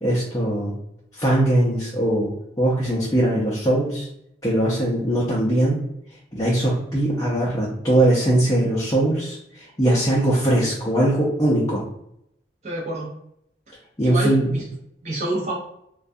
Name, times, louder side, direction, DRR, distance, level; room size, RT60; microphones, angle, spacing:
voice 1, 0.0-0.8 1.1-4.1 4.4-5.8 6.3-11.8 14.0-14.5, right 1 dB, 20° left, -7 dB, 0.5 m, -21 dB
voice 2, 12.6-13.1 13.7-14.6 15.0-15.5, right 2 dB, 40° right, -6 dB, 0.7 m, -28 dB
2.3 x 2.2 x 2.6 m, 0.76 s
head